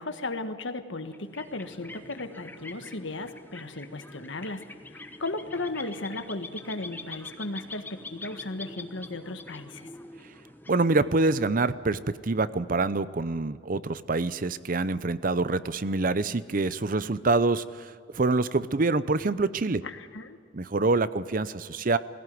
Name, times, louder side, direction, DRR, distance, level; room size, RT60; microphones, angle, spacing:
voice 1, 0.0-4.6 4.9-9.9 19.8-20.4, left 2 dB, 85° left, 8 dB, 1.5 m, -36 dB
sound 1, 1.0-11.4, left 2 dB, 10° left, 1.1 m, -45 dB
voice 2, 10.7-19.8 20.5-22.0, right 3 dB, 45° right, 15 dB, 0.7 m, -26 dB
20.0 x 16.5 x 9.4 m, 2.1 s
head